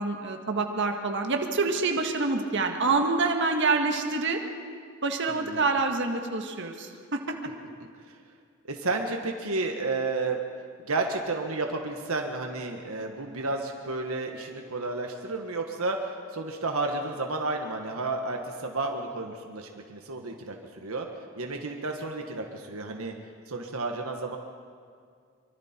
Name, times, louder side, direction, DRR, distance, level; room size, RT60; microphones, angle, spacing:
voice 1, 0.0-4.4 5.0-7.2, right 3 dB, 55° right, 3 dB, 1.7 m, -26 dB
voice 2, 5.3-5.6 8.1-8.2 8.6-10.4 10.8-21.1 21.3-23.1 23.5-24.4, right 3 dB, 75° right, 3 dB, 1.5 m, -32 dB
24.5 x 24.0 x 4.5 m, 2.2 s
head